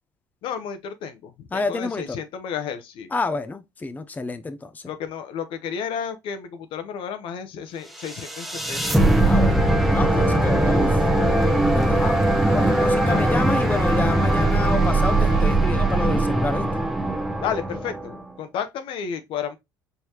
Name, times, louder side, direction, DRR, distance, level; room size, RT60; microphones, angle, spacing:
voice 1, 0.4-3.1 4.9-9.2 13.0-13.2 17.4-19.6, left 7 dB, 65° left, 0.8 m, -32 dB
voice 2, 1.5-2.2 3.1-4.9 9.2-11.0 11.7-12.2 12.5-16.8, left 3 dB, 15° left, 0.5 m, -29 dB
sound 1, 8.0-18.2, right 1 dB, ahead, 0.9 m, -20 dB
sound 2, 8.8-15.6, right 8 dB, 60° right, 0.7 m, -40 dB
4.6 x 3.2 x 2.8 m
hypercardioid pair, 70°, 10 cm